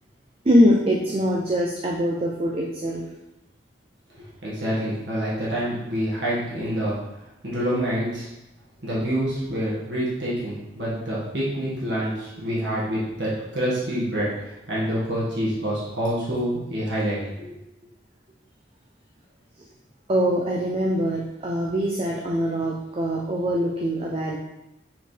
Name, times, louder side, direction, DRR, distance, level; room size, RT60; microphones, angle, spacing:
voice 1, 0.4-3.0 20.1-24.4, equal, 35° right, -2 dB, 0.6 m, -23 dB
voice 2, 4.4-7.0 7.4-8.3 8.8-17.5, equal, 80° right, -7 dB, 1.8 m, -27 dB
6.7 x 4.5 x 3.4 m, 0.93 s
head